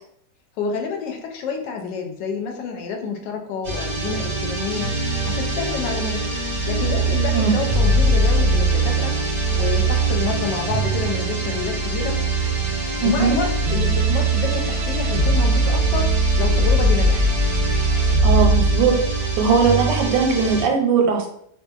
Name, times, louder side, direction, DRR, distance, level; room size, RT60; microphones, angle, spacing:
voice 1, 0.6-5.0 5.2-6.3 6.7-9.2 9.5-12.2 13.0-17.3, left 5 dB, 80° left, 3 dB, 1.2 m, -28 dB
sound 1, 3.6-20.6, right 2 dB, 65° right, 0.4 m, -21 dB
voice 2, 13.0-13.4 18.2-21.3, right 5 dB, 90° right, 3 dB, 1.2 m, -19 dB
2.7 x 2.6 x 2.3 m, 0.70 s
omnidirectional pair, 1.9 m